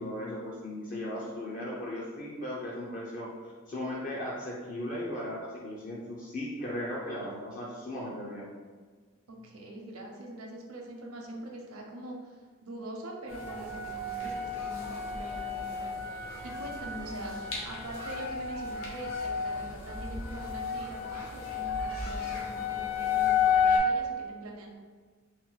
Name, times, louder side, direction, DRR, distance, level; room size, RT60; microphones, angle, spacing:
voice 1, 0.0-8.5, left 1 dB, 40° left, -5 dB, 0.5 m, -37 dB
voice 2, 9.3-24.7, right 1 dB, 85° right, 0 dB, 0.8 m, -43 dB
sound 1, 13.3-23.8, left 6 dB, 70° left, 1.1 m, -32 dB
4.2 x 2.2 x 3.9 m, 1.5 s
head